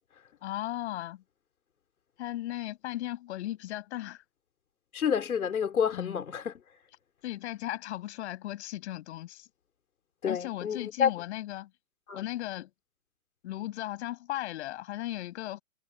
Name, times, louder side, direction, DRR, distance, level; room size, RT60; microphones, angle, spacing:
voice 1, 0.4-1.2 2.2-4.2 5.9-6.2 7.2-9.5 10.3-11.7 12.1-12.7 13.4-15.6, left 14 dB, 50° left, 6.5 m, -36 dB
voice 2, 4.9-6.6 10.2-11.1 12.1-12.2, left 7 dB, 85° left, 4.7 m, -29 dB
hypercardioid pair, 140°, 42 cm